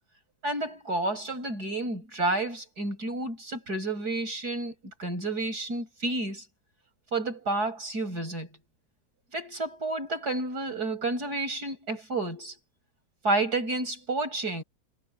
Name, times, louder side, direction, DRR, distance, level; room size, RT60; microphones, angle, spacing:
voice 1, 0.4-4.7 5.0-6.4 7.1-8.5 9.3-12.6 13.2-14.6, right 2 dB, 75° right, 8.4 m, -30 dB
omnidirectional pair, 1.7 m